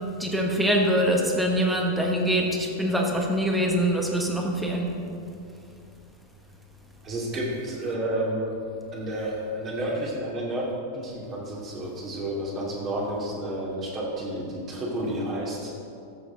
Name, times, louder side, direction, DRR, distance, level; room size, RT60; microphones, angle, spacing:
voice 1, 0.2-4.9, equal, 5° right, 0 dB, 1.3 m, -24 dB
voice 2, 7.0-8.5 8.9-10.7 10.9-15.7, right 1 dB, 30° right, -3 dB, 2.5 m, -30 dB
14.0 x 7.2 x 3.9 m, 2.5 s
figure-of-eight pair, 90°, 0 cm